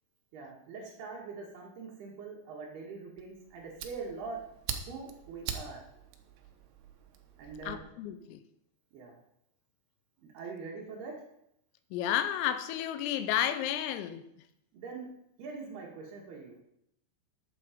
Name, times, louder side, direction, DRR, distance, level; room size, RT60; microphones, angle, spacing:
voice 1, 0.3-4.4 4.9-5.8 7.4-7.9 8.9-9.2 10.2-11.1 14.7-15.1 15.4-16.6, right 4 dB, 60° right, 3.3 m, -43 dB
Fire, 3.2-7.8, right 8 dB, 85° right, 2.2 m, -43 dB
voice 2, 7.7-8.4 11.9-14.2, left 11 dB, 85° left, 3.5 m, -31 dB
12.0 x 8.1 x 5.2 m
omnidirectional pair, 5.9 m